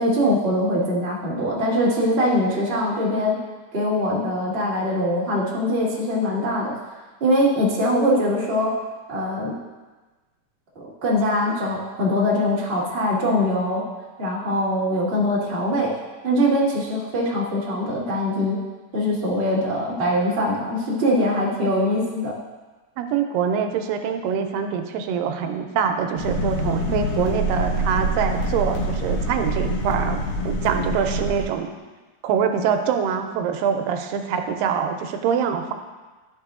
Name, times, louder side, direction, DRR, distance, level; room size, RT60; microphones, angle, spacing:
voice 1, 0.0-3.3 3.7-6.7 7.2-8.7 9.1-9.5 10.7-13.8 14.2-15.9 16.2-18.6 18.9-22.3, left 1 dB, 50° right, -7 dB, 0.6 m, -22 dB
voice 2, 23.0-31.7 32.2-35.7, right 7 dB, 85° right, 6 dB, 2.2 m, -24 dB
sound 1, 26.2-31.4, right 1 dB, 70° left, 2.4 m, -25 dB
11.5 x 5.0 x 2.4 m, 1.3 s
omnidirectional pair, 3.9 m